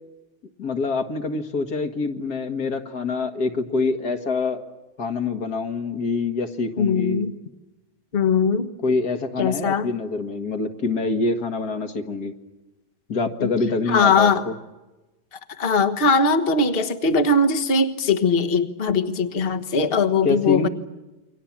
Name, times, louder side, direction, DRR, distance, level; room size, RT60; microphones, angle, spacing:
voice 1, 0.6-4.6 5.0-7.3 8.8-12.3 13.1-14.5 20.2-20.7, left 3 dB, 55° left, 7 dB, 2.2 m, -25 dB
voice 2, 6.8-7.3 8.1-8.7 9.4-9.9 13.4-13.5 13.9-14.4 15.6-20.7, left 4 dB, 30° left, 7 dB, 1.5 m, -20 dB
29.5 x 24.0 x 7.4 m, 1.1 s
omnidirectional pair, 2.1 m